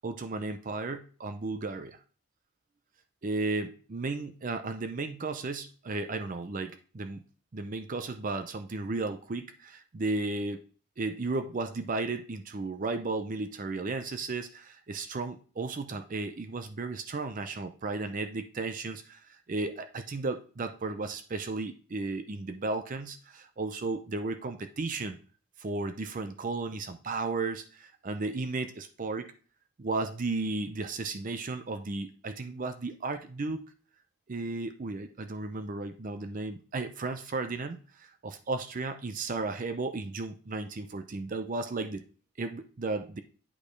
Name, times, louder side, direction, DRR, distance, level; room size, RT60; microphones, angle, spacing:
voice 1, 0.0-2.0 3.2-7.2 7.5-10.6 11.0-25.2 25.6-29.3 29.8-33.6 34.3-42.0 42.4-43.2, right 3 dB, 35° right, 9 dB, 0.5 m, -34 dB
8.6 x 5.1 x 3.2 m, 0.39 s
head